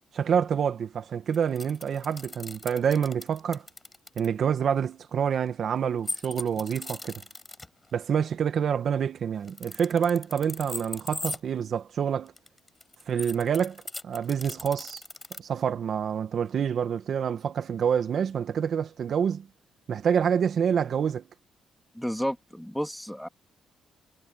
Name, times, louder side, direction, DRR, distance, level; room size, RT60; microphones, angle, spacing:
voice 1, 0.1-3.6 4.2-7.2 7.9-12.3 13.1-13.8 14.0-15.0 15.4-19.5 19.9-21.3, right 7 dB, 60° right, 1.9 m, -27 dB
sound 1, 1.3-4.3 6.1-7.7 9.4-11.4 12.3-15.4, left 2 dB, 20° left, 5.9 m, -38 dB
voice 2, 21.9-23.3, equal, ahead, 2.6 m, -31 dB
cardioid pair, 90°, 0 cm